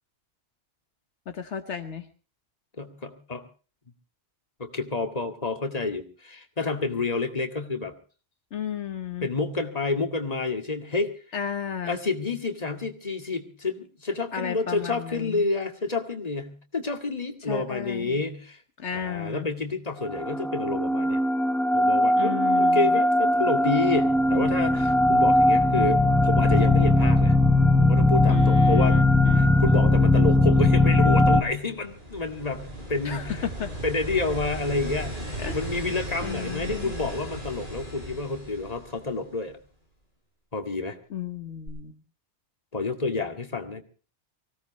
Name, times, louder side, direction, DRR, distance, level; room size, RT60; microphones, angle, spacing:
voice 1, 1.3-2.1 8.5-9.3 11.3-12.0 14.3-15.5 17.4-18.2 18.8-19.5 22.2-23.0 28.3-29.5 33.0-33.7 35.4-35.6 36.2-36.9 41.1-42.0, left 8 dB, 75° left, 8 dB, 1.4 m, -33 dB
voice 2, 2.8-3.4 4.6-7.9 9.2-11.1 11.9-18.6 18.9-21.2 21.7-27.4 27.8-29.0 29.4-33.4 33.8-35.1 35.5-39.6 40.5-41.0 42.7-43.8, left 3 dB, 35° left, 5 dB, 2.2 m, -29 dB
sound 1, 20.1-31.4, left 1 dB, ahead, 0.7 m, -20 dB
sound 2, 31.0-39.5 41.7-41.8, right 1 dB, 45° right, 6.4 m, -37 dB
24.5 x 17.0 x 3.1 m, 0.37 s
omnidirectional pair, 1.2 m